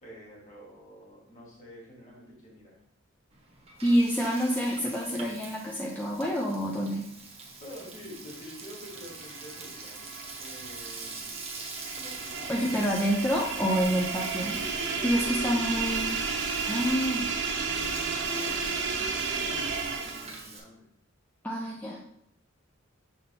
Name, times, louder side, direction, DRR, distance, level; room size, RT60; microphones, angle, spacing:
voice 1, 0.0-2.8 7.6-10.1 10.4-11.3 11.9-12.9 15.4-15.9 17.8-20.8, equal, 35° left, -4 dB, 2.4 m, -48 dB
Frying (food), 3.3-20.6, right 4 dB, 30° right, 1.1 m, -44 dB
voice 2, 3.8-7.1 12.5-14.6 15.0-16.2 16.7-17.3 21.4-22.0, equal, 10° left, -3 dB, 0.6 m, -27 dB
sound 1, 8.5-20.4, right 4 dB, 60° right, 0.9 m, -33 dB
6.6 x 4.2 x 3.5 m, 0.68 s
head